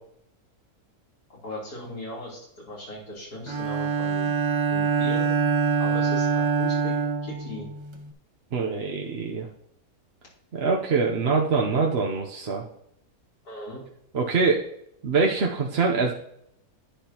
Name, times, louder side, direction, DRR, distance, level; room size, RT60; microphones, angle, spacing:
voice 1, 1.4-4.3 4.7-5.3 5.8-6.9 7.2-7.7 13.4-13.8, left 1 dB, 85° left, -6 dB, 3.9 m, -38 dB
Bowed string instrument, 3.5-8.1, right 5 dB, 30° right, 0.5 m, -25 dB
voice 2, 8.5-9.5 10.5-12.6 14.1-14.7 15.0-16.1, right 4 dB, 50° right, -1 dB, 0.9 m, -24 dB
10.0 x 9.9 x 2.9 m, 0.74 s
omnidirectional pair, 1.6 m